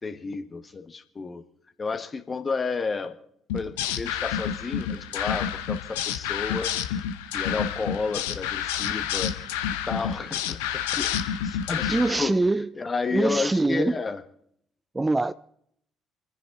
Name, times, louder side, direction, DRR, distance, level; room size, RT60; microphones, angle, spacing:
voice 1, 0.0-1.4 1.8-3.2 3.5-6.7 7.3-9.3 9.9-11.1 11.4-12.4 12.7-14.2, left 4 dB, 30° left, 1.6 m, -31 dB
sound 1, 3.5-12.2, left 9 dB, 75° left, 0.9 m, -29 dB
voice 2, 11.9-12.7 13.1-14.0 14.9-15.3, right 2 dB, 20° right, 0.5 m, -23 dB
28.0 x 10.0 x 4.0 m
figure-of-eight pair, 45°, 0 cm